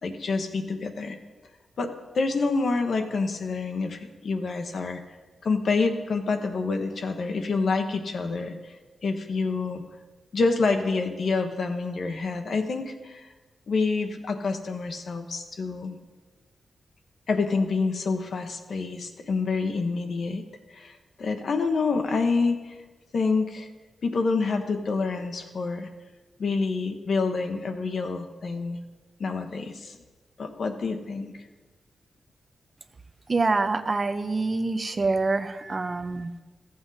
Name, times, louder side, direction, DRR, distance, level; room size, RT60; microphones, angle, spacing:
voice 1, 0.0-1.2 1.8-5.0 5.4-8.7 9.0-9.8 10.3-13.3 13.7-16.0 17.3-20.4 20.7-20.9 21.2-22.7 23.1-23.7 24.0-25.9 26.4-28.8 29.2-30.0 30.4-31.3, left 4 dB, 70° left, 5 dB, 1.0 m, -27 dB
voice 2, 33.3-36.3, right 3 dB, 40° right, 9 dB, 0.6 m, -26 dB
14.0 x 7.9 x 4.0 m, 1.3 s
cardioid pair, 65°, 0 cm